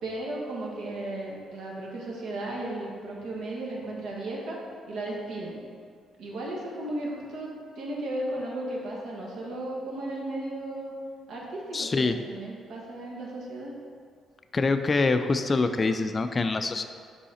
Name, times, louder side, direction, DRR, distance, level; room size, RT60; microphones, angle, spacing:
voice 1, 0.0-4.6 4.9-5.6 6.2-10.9 11.3-13.7, right 1 dB, 80° right, -3 dB, 1.3 m, -35 dB
voice 2, 11.7-12.2 14.5-16.8, left 3 dB, 30° left, 9 dB, 0.4 m, -25 dB
5.5 x 4.8 x 4.2 m, 2.1 s
cardioid pair, 90°, 0 cm